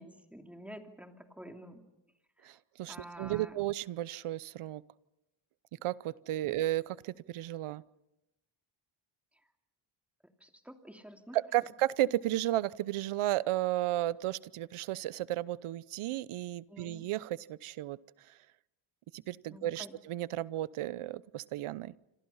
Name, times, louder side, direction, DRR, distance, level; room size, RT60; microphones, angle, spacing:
voice 1, 0.0-1.8 2.4-2.5 2.9-3.6 10.4-11.4 16.7-17.1 19.5-19.9, equal, 5° right, 4 dB, 2.8 m, -49 dB
voice 2, 2.4-4.8 5.8-7.8 11.3-18.0 18.3-18.4 19.1-21.9, right 14 dB, 80° right, 19 dB, 0.9 m, -33 dB
27.0 x 27.0 x 5.7 m, 0.90 s
cardioid pair, 120°, 49 cm